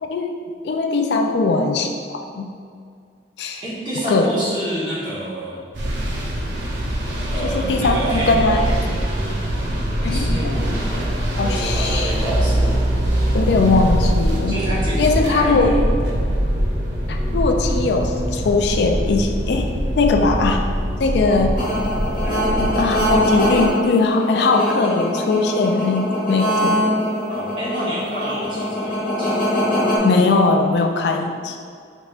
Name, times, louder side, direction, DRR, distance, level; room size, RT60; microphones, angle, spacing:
voice 1, 0.0-2.5 3.4-3.6 4.1-4.3 7.4-8.7 10.0-10.8 11.4-12.2 13.3-14.6 15.0-15.7 17.1-19.7 20.0-20.7 21.0-21.5 22.6-26.8 30.0-31.6, left 3 dB, 65° left, 4 dB, 0.3 m, -20 dB
voice 2, 3.6-5.6 7.3-9.7 10.0-11.0 11.4-12.7 14.5-15.8 27.3-29.6, right 1 dB, 25° right, -8 dB, 1.2 m, -28 dB
sound 1, 5.7-23.7, equal, 80° right, 0.7 m, -23 dB
sound 2, 21.6-30.0, equal, 45° left, 1.1 m, -22 dB
5.1 x 4.1 x 2.5 m, 2.2 s
head